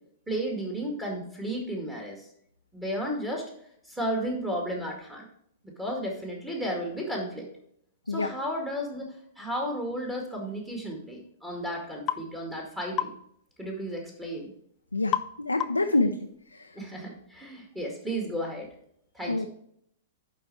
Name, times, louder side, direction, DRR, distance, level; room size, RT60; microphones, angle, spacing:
voice 1, 0.3-2.2 2.7-3.5 3.9-5.2 5.6-7.5 8.1-13.1 13.6-14.5 16.7-18.7 19.1-19.5, equal, 10° right, -1 dB, 2.1 m, -33 dB
sound 1, 12.1-12.3 13.0-13.2 15.1-15.3 15.6-15.9, left 12 dB, 30° left, 0.5 m, -29 dB
voice 2, 14.9-16.1 19.3-19.5, left 2 dB, 80° left, 4 dB, 0.6 m, -26 dB
11.5 x 4.2 x 4.6 m, 0.69 s
figure-of-eight pair, 105°, 0 cm